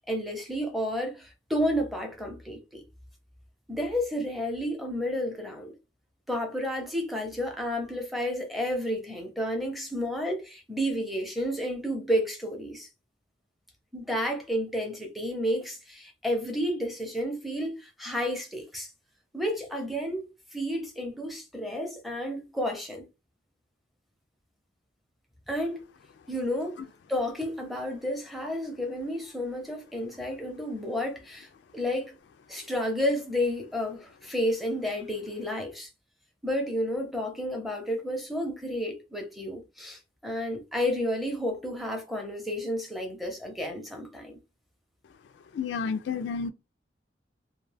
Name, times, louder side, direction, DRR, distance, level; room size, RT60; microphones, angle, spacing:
voice 1, 0.1-2.8 3.7-5.7 6.3-12.9 13.9-18.9 19.3-23.0 25.5-25.9 26.3-26.8 27.1-32.2 32.5-35.9 36.4-44.4, equal, ahead, 0.6 m, -31 dB
voice 2, 45.5-46.5, left 5 dB, 70° left, 0.3 m, -30 dB
2.4 x 2.2 x 3.2 m
head